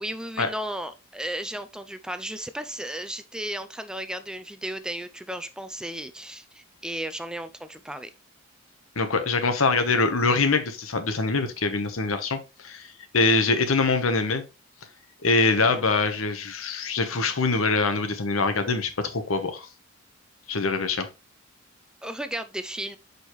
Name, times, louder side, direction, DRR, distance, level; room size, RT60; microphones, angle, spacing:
voice 1, 0.0-8.1 15.5-15.9 22.0-23.0, right 1 dB, 5° right, 0.3 m, -34 dB
voice 2, 9.0-14.4 15.2-19.7 20.5-21.1, left 3 dB, 80° left, 1.1 m, -24 dB
6.3 x 5.3 x 3.1 m
head